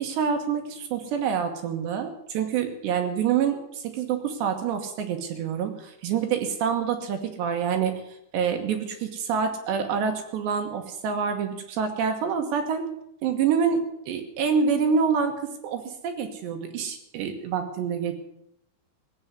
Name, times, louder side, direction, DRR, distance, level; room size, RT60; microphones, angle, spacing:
voice 1, 0.0-8.0 8.3-12.8 13.2-15.3 15.6-18.1, right 6 dB, 70° right, 5 dB, 3.2 m, -27 dB
17.5 x 8.7 x 8.1 m, 0.77 s
omnidirectional pair, 5.7 m